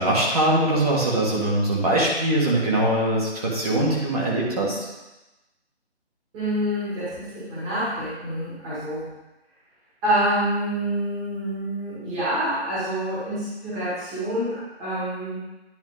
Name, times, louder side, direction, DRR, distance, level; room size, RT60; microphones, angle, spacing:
voice 1, 0.0-4.9, right 1 dB, 35° right, -5 dB, 1.8 m, -22 dB
voice 2, 6.3-9.1 10.0-15.4, right 1 dB, 10° right, -11 dB, 1.8 m, -27 dB
10.5 x 4.4 x 4.0 m, 1.0 s
figure-of-eight pair, 160°, 34 cm